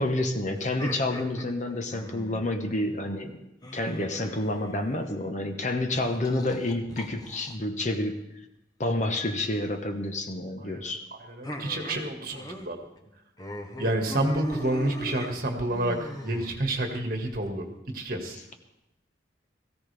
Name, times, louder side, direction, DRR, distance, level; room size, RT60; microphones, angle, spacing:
voice 1, 0.0-3.4 3.7-8.2 8.8-11.0, left 1 dB, 40° left, 6 dB, 1.1 m, -29 dB
sound 1, 0.6-2.6 3.6-5.0 5.9-7.6 9.2-9.6 11.4-12.7 13.0-13.1 13.4-17.0, equal, 20° left, 1.0 m, -40 dB
voice 2, 11.2-12.8 13.8-18.4, right 1 dB, 50° right, 3 dB, 1.9 m, -29 dB
18.0 x 15.5 x 3.5 m, 0.90 s
head